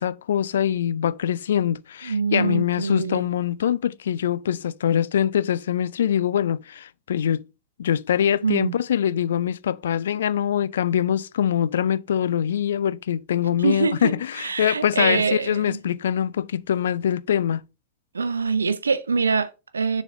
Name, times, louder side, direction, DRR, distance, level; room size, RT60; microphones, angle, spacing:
voice 1, 0.0-7.4 7.8-17.6, left 9 dB, 65° left, 0.3 m, -23 dB
voice 2, 2.0-3.2 8.4-8.8 13.6-15.8 18.1-20.0, right 5 dB, 75° right, 0.6 m, -24 dB
6.8 x 4.1 x 4.9 m
figure-of-eight pair, 90°, 0 cm